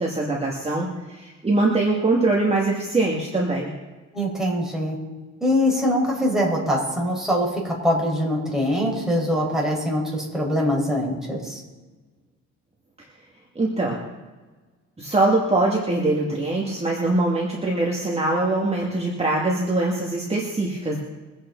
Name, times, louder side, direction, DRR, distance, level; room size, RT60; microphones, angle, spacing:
voice 1, 0.0-3.7 13.6-14.0 15.0-21.0, right 2 dB, 20° right, -3 dB, 2.5 m, -23 dB
voice 2, 4.1-5.0 5.4-11.6, equal, ahead, -3 dB, 5.6 m, -23 dB
23.5 x 8.9 x 4.2 m, 1.3 s
cardioid pair, 90°, 30 cm